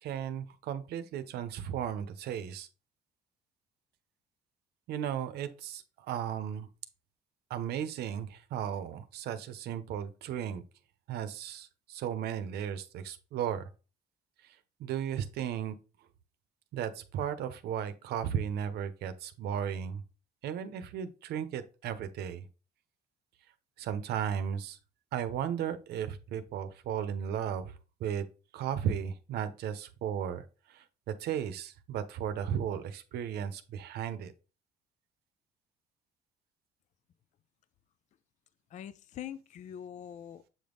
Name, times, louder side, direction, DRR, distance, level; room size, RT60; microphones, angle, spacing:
voice 1, 0.0-2.7 4.9-6.7 7.5-10.6 11.1-13.7 14.4-15.8 16.7-20.0 20.4-22.5 23.8-24.8 25.1-28.2 28.5-34.3, right 9 dB, 70° right, 0.8 m, -35 dB
voice 2, 38.7-40.5, left 10 dB, 45° left, 0.4 m, -43 dB
7.7 x 3.5 x 3.8 m
cardioid pair, 110°, 17 cm